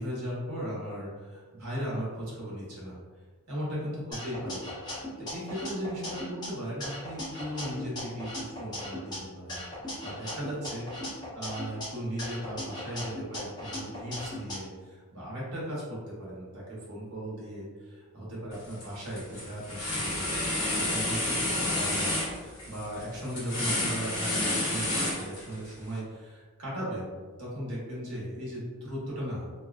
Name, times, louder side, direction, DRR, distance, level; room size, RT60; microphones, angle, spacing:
voice 1, 0.0-3.0 3.5-4.6 5.3-9.6 10.0-27.1 27.4-29.5, equal, 85° right, -6 dB, 1.0 m, -37 dB
sound 1, 4.1-6.5 6.8-9.2 9.5-11.9 12.2-14.6, left 1 dB, 20° left, 0.7 m, -38 dB
sound 2, 18.5-18.8 19.2-25.7, left 1 dB, 75° left, 1.0 m, -30 dB
2.6 x 2.2 x 2.3 m, 1.4 s
head